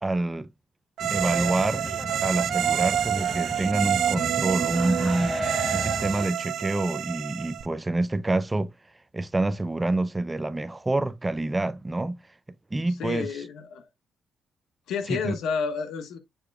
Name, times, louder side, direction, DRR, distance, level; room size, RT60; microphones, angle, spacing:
voice 1, 0.0-0.5 1.1-1.9 2.2-5.4 5.7-8.7 9.1-12.2 12.7-13.3 15.1-15.3, right 2 dB, 15° right, 0.5 m, -27 dB
sound 1, 1.0-6.3, equal, 5° left, 0.8 m, -34 dB
sound 2, 1.0-7.7, right 10 dB, 70° right, 0.6 m, -28 dB
sound 3, 1.6-1.7 2.1-2.2 2.7-6.9 7.6-7.7, right 8 dB, 50° right, 1.0 m, -37 dB
voice 2, 13.0-13.8 14.9-16.2, left 6 dB, 80° left, 1.3 m, -30 dB
7.2 x 6.5 x 2.3 m
cardioid pair, 90°, 0 cm